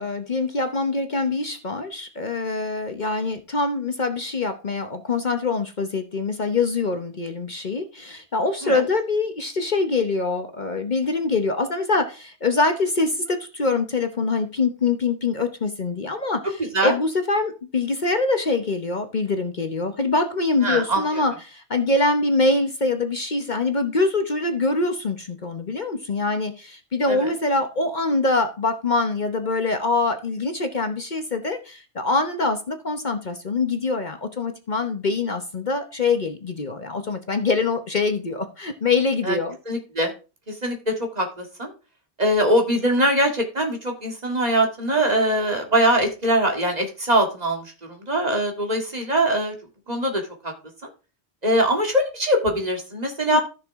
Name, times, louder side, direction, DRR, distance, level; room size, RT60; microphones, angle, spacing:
voice 1, 0.0-39.6 53.3-53.4, left 3 dB, 45° left, 6 dB, 1.1 m, -24 dB
voice 2, 20.6-21.2 27.1-27.3 39.2-39.4 39.7-40.1 40.5-41.7 42.2-49.5 49.9-50.5 50.8-50.9 51.4-53.4, right 1 dB, 35° right, 2 dB, 2.1 m, -22 dB
14.0 x 6.2 x 3.6 m, 0.32 s
omnidirectional pair, 1.1 m